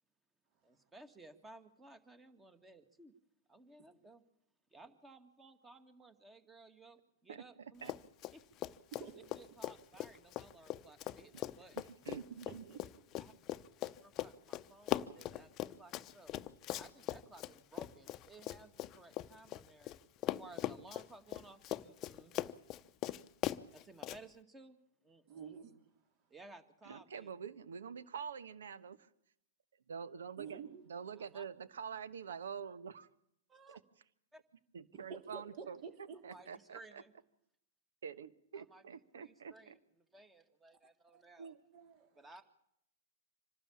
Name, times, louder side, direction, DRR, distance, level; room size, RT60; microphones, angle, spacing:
voice 1, 0.6-3.1 3.5-4.2 4.7-8.0 8.3-8.4 9.4-11.8 13.2-13.3 14.0-16.3 16.8-19.9 20.2-22.4 23.7-24.8 25.0-25.5 26.3-27.3 31.2-31.4 33.5-33.8 34.3-34.4 36.3-37.1 38.6-38.8 39.1-39.8 40.1-41.5 42.2-42.4, right 2 dB, 15° right, 10 dB, 2.1 m, -58 dB
voice 2, 7.3-7.9 11.8-12.6 26.8-29.1 29.9-30.6 30.9-33.1 33.7-33.8 34.7-35.8 36.2-37.0 38.0-39.8 41.4-41.6, right 7 dB, 80° right, 15 dB, 1.2 m, -46 dB
Run, 7.8-8.4 8.6-20.0 20.2-24.2, left 13 dB, 35° left, 0.8 m, -40 dB
voice 3, 12.5-12.9 25.3-25.8 30.4-30.8 34.9-36.3 41.1-41.2 41.7-42.3, right 6 dB, 45° right, 7 dB, 3.5 m, -49 dB
26.0 x 12.5 x 8.7 m, 0.76 s
hypercardioid pair, 120°, 0 cm